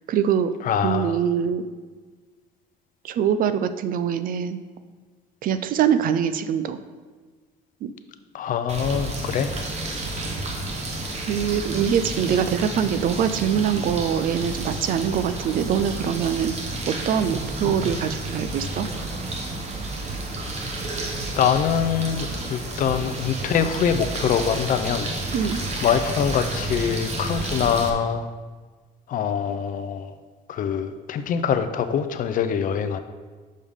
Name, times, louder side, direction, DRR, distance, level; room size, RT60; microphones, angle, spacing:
voice 1, 0.1-0.5 0.8-1.6 3.0-4.6 5.4-6.8 7.8-7.9 11.1-16.6 16.9-18.9 25.3-25.6, right 8 dB, 55° right, 11 dB, 0.4 m, -23 dB
voice 2, 0.7-1.2 8.3-9.5 17.6-17.8 21.4-25.1 25.8-28.3 29.1-30.1 30.5-33.0, left 7 dB, 55° left, 9 dB, 0.5 m, -24 dB
sound 1, 8.7-27.9, right 2 dB, 40° right, 1.0 m, -31 dB
6.4 x 5.4 x 3.6 m, 1.4 s
cardioid pair, 110°, 17 cm